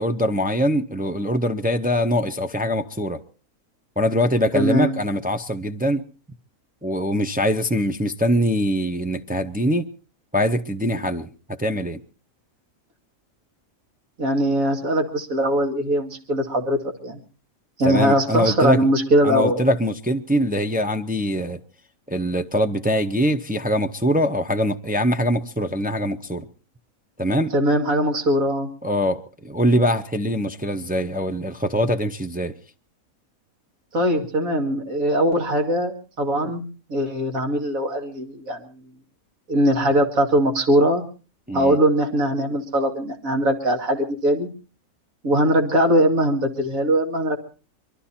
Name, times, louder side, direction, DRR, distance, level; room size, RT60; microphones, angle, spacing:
voice 1, 0.0-3.2 4.0-6.0 6.8-9.9 10.3-11.3 11.6-12.0 17.8-18.9 19.2-21.6 22.1-26.4 27.2-27.5 28.8-32.5 41.5-41.8, equal, 15° right, 0.3 m, -23 dB
voice 2, 4.5-5.0 14.2-17.2 17.8-19.6 27.5-28.7 33.9-36.6 36.9-38.8 39.5-41.0 41.5-44.5 45.2-47.4, equal, 70° right, 2.6 m, -21 dB
23.0 x 13.0 x 4.3 m
omnidirectional pair, 1.5 m